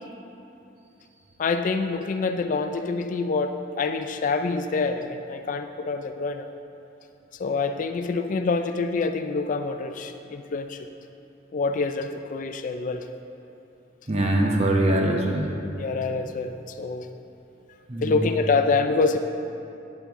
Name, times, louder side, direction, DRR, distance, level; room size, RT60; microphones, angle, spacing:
voice 1, 1.4-6.5 7.4-10.8 11.5-13.1 15.8-17.1 18.0-19.2, left 4 dB, 45° left, 8 dB, 0.3 m, -26 dB
voice 2, 14.1-15.5 17.9-18.2, right 1 dB, 35° right, 0 dB, 0.9 m, -22 dB
10.0 x 7.3 x 3.6 m, 2.8 s
head